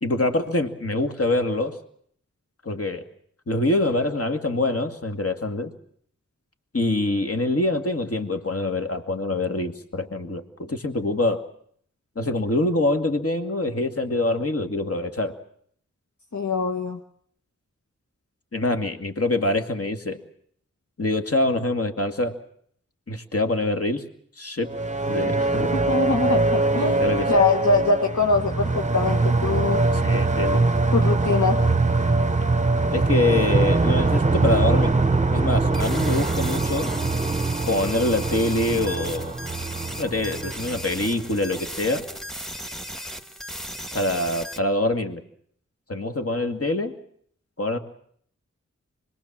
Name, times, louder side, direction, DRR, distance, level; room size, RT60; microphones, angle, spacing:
voice 1, 0.0-1.8 2.7-3.0 3.5-5.7 6.7-11.5 12.2-15.4 18.5-20.2 21.0-22.4 23.1-24.0 24.4-24.7 25.1-25.7 27.0-27.3 29.9-30.6 32.9-35.0 35.3-36.9 37.7-39.3 40.0-42.0 43.9-45.2 45.9-47.0 47.6-47.8, left 2 dB, 50° left, 6 dB, 2.4 m, -25 dB
voice 2, 16.3-17.0 25.7-29.8 30.9-31.7, left 3 dB, 75° left, 2 dB, 1.6 m, -23 dB
sound 1, 24.6-41.5, right 3 dB, 25° right, 0.9 m, -23 dB
sound 2, 35.7-44.6, equal, ahead, 1.8 m, -36 dB
25.5 x 21.0 x 7.5 m, 0.64 s
wide cardioid pair, 75°, 29 cm